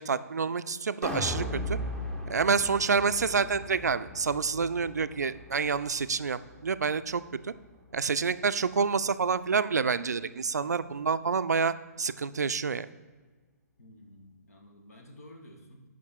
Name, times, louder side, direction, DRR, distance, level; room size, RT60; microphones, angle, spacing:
voice 1, 0.0-1.8 2.3-7.5 7.9-12.9, right 5 dB, 75° right, 14 dB, 0.4 m, -28 dB
sound 1, 1.0-7.2 7.6-7.7, left 1 dB, 5° left, 0.9 m, -38 dB
voice 2, 13.8-15.8, left 1 dB, 65° left, 2 dB, 1.6 m, -51 dB
8.6 x 5.8 x 4.5 m, 1.4 s
figure-of-eight pair, 125°, 9 cm